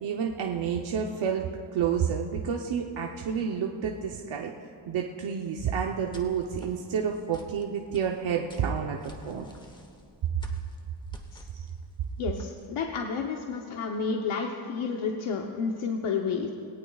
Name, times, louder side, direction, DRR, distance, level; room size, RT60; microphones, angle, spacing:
voice 1, 0.0-4.5 4.9-9.4 11.5-11.6, right 7 dB, 70° right, 1 dB, 0.9 m, -30 dB
sound 1, 5.5-12.8, equal, 10° left, 1.1 m, -51 dB
voice 2, 12.2-16.5, left 5 dB, 85° left, 1 dB, 1.0 m, -31 dB
21.0 x 18.0 x 2.4 m, 2.4 s
wide cardioid pair, 170°, 48 cm